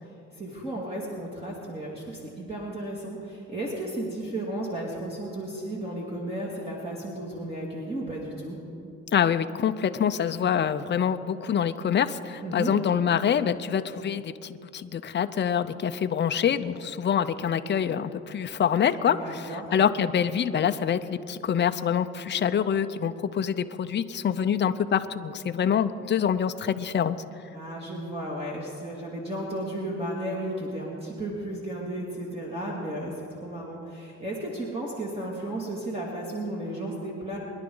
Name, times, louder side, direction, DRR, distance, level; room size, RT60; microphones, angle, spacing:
voice 1, 0.4-8.6 12.4-12.8 19.1-19.7 27.5-37.4, right 1 dB, 20° right, -4 dB, 2.4 m, -34 dB
voice 2, 9.1-14.3 14.7-27.2, left 8 dB, 35° left, 10 dB, 0.6 m, -25 dB
23.5 x 11.0 x 3.9 m, 2.6 s
cardioid pair, 90°, 30 cm